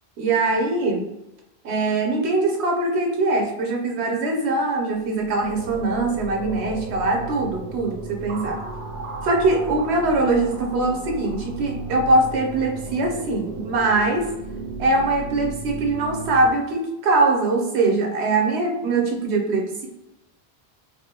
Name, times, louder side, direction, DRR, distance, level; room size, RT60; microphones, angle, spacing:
voice 1, 0.2-1.1 1.6-8.6 9.2-14.3 14.8-19.9, right 2 dB, 85° right, 1 dB, 1.0 m, -22 dB
sound 1, 4.9-16.5, right 3 dB, 60° right, 0.7 m, -35 dB
3.8 x 2.2 x 2.8 m, 0.92 s
omnidirectional pair, 1.1 m